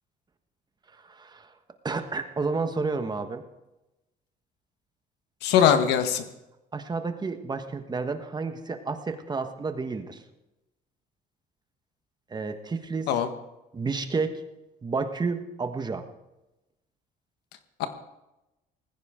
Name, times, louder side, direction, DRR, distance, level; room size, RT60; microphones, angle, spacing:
voice 1, 1.1-1.5 1.8-3.4 6.7-10.2 12.3-13.1 13.7-14.4 14.8-16.0, right 4 dB, 25° right, 7 dB, 1.5 m, -30 dB
voice 2, 5.4-6.2 13.1-13.3 17.8-17.9, left 8 dB, 90° left, 8 dB, 1.5 m, -21 dB
19.5 x 15.5 x 3.8 m, 0.97 s
cardioid pair, 110°, 17 cm